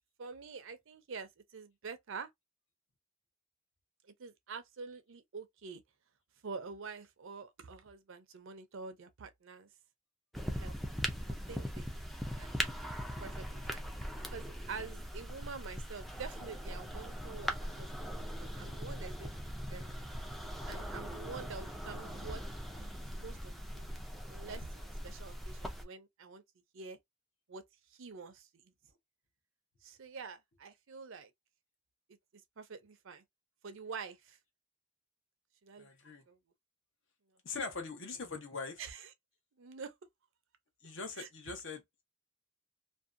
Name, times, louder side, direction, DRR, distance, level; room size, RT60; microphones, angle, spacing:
voice 1, 0.2-2.3 4.2-5.8 6.4-9.7 10.6-10.8 11.5-12.0 12.4-12.7 13.0-13.8 14.3-18.1 18.4-20.0 20.6-26.4 26.7-27.0 27.5-27.6 27.9-28.7 29.8-31.3 32.6-33.2 33.6-34.4 35.6-35.9 36.3-36.4 38.8-39.1 39.6-39.9 41.2-41.3, right 5 dB, 65° right, 0.6 m, -47 dB
sound 1, 10.3-25.8, equal, ahead, 0.4 m, -40 dB
voice 2, 35.8-36.2 37.4-38.8 40.8-42.0, left 4 dB, 60° left, 0.9 m, -42 dB
2.6 x 2.2 x 2.5 m
head